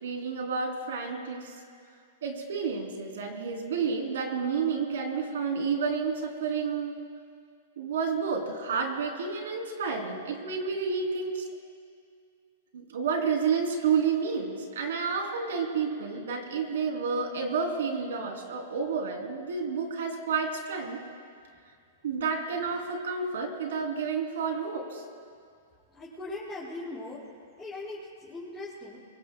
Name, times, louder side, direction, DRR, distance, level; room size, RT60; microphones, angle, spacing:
voice 1, 0.0-1.6 2.2-7.0 7.8-11.4 12.7-21.0 22.0-25.0, right 5 dB, 80° right, 2 dB, 3.1 m, -30 dB
voice 2, 25.9-27.2 27.6-29.0, left 2 dB, 5° left, -14 dB, 5.5 m, -39 dB
25.0 x 23.5 x 2.3 m, 2.2 s
hypercardioid pair, 145°, 0 cm